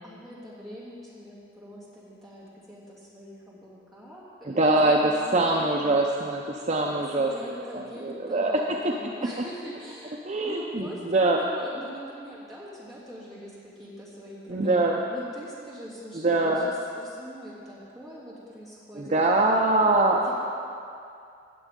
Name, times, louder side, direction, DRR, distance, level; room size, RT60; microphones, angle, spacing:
voice 1, 0.0-5.9 6.9-19.2 20.1-20.3, equal, ahead, -10 dB, 2.9 m, -43 dB
voice 2, 4.5-8.8 10.3-11.4 14.5-15.0 16.2-16.7 18.9-20.3, right 2 dB, 35° right, 0 dB, 0.6 m, -23 dB
17.0 x 8.2 x 3.7 m, 2.5 s
head